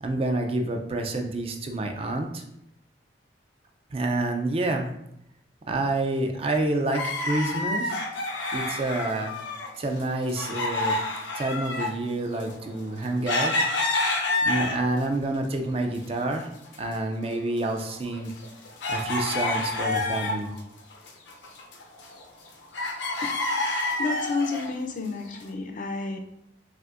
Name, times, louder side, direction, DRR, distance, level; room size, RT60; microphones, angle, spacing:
voice 1, 0.0-2.4 3.9-4.9 5.7-8.0 8.5-9.3 9.8-11.0 11.3-13.5 14.4-16.5 16.8-18.3 18.9-20.5, right 2 dB, 30° right, 4 dB, 0.4 m, -28 dB
sound 1, 6.9-9.7 10.0-15.0 15.5-16.4 16.7-16.8 17.4-20.6 20.9-22.5 22.7-24.7 25.3-25.4, left 2 dB, 85° left, 0.6 m, -28 dB
voice 2, 24.0-26.2, left 4 dB, 45° left, 4 dB, 0.5 m, -30 dB
5.8 x 2.6 x 2.5 m, 0.78 s
head